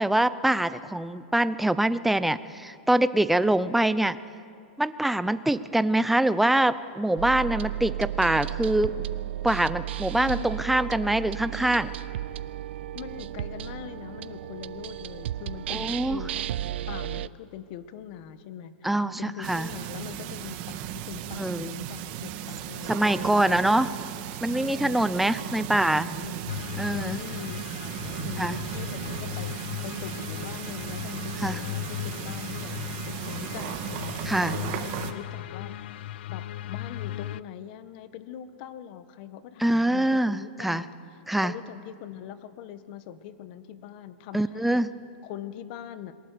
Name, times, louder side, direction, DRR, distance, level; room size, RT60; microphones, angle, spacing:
voice 1, 0.0-4.2 4.8-8.9 9.4-11.9 15.7-16.2 18.8-19.7 21.4-21.7 22.9-23.9 24.4-26.1 26.8-27.2 28.4-28.5 31.4-31.6 34.3-34.6 39.6-40.8 41.3-41.5 44.3-44.9, right 1 dB, 5° right, 13 dB, 0.6 m, -24 dB
sound 1, 7.2-17.3, right 12 dB, 75° right, 0.6 m, -34 dB
voice 2, 10.1-10.5 12.9-23.4 23.7-23.8 24.5-26.4 26.9-32.7 33.1-35.7 36.3-40.9 41.4-44.8 45.2-46.1, left 10 dB, 50° left, 11 dB, 1.5 m, -42 dB
sound 2, 19.4-35.1, right 11 dB, 45° right, 1.7 m, -36 dB
sound 3, 26.5-37.4, left 14 dB, 65° left, 0.5 m, -37 dB
26.0 x 22.5 x 6.8 m, 2.3 s
supercardioid pair, 150°, 6 cm